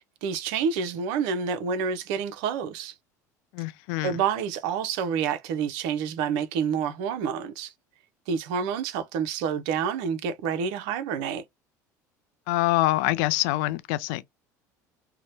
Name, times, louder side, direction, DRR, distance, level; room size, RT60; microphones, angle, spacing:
voice 1, 0.2-2.9 4.0-7.7 8.3-11.4, right 6 dB, 70° right, 0.5 m, -28 dB
voice 2, 3.5-4.2 12.5-14.2, left 18 dB, 70° left, 0.4 m, -25 dB
2.8 x 2.1 x 2.7 m
hypercardioid pair, 75°, 9 cm